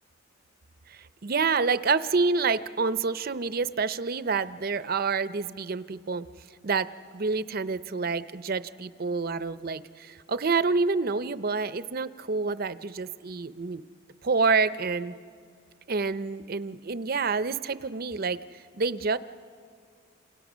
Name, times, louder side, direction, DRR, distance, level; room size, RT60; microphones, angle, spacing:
voice 1, 0.9-6.3 6.6-6.9 7.1-13.8 14.2-15.1 15.9-18.4 18.7-19.2, right 4 dB, 45° right, 14 dB, 0.5 m, -28 dB
29.0 x 27.5 x 6.2 m, 2.2 s
head